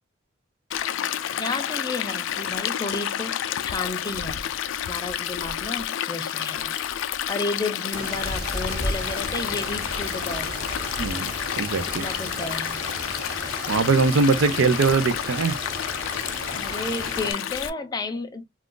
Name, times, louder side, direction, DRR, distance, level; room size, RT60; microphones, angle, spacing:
Stream, 0.7-17.7, left 10 dB, 80° left, 0.3 m, -30 dB
voice 1, 0.9-4.5 4.8-6.8 7.3-10.7 12.0-12.8 13.1-13.2 16.5-18.4, left 2 dB, 20° left, 0.5 m, -32 dB
sound 1, 7.9-17.3, right 1 dB, 50° right, 1.1 m, -35 dB
voice 2, 11.0-12.1 13.7-15.6, right 4 dB, 85° right, 0.4 m, -22 dB
2.4 x 2.3 x 3.6 m
head